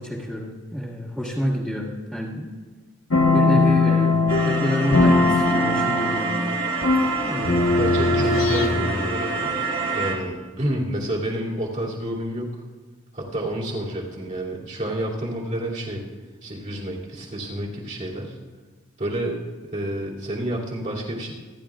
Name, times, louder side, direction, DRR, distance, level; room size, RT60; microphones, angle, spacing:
voice 1, 0.0-2.5 3.3-6.3 7.2-7.8 8.1-9.0, equal, 5° right, -8 dB, 1.6 m, -29 dB
sound 1, 3.1-9.0, left 3 dB, 90° left, 1.4 m, -20 dB
sound 2, 4.3-10.1, right 3 dB, 65° right, 3.7 m, -27 dB
voice 2, 7.8-9.5 9.9-12.5 13.1-16.0 16.4-18.4 19.0-19.4 19.7-21.3, right 1 dB, 40° right, -4 dB, 2.9 m, -29 dB
27.5 x 11.0 x 2.5 m, 1.3 s
head